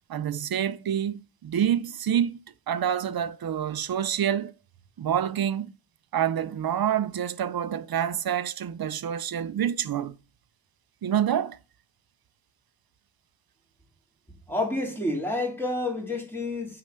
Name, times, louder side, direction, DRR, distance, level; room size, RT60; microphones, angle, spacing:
voice 1, 0.1-2.4 2.7-4.5 5.0-5.7 6.1-10.1 11.0-11.6, right 9 dB, 55° right, 0.6 m, -27 dB
voice 2, 14.5-16.8, left 2 dB, 5° left, 2.2 m, -29 dB
6.6 x 4.8 x 6.5 m
wide cardioid pair, 105°, 45 cm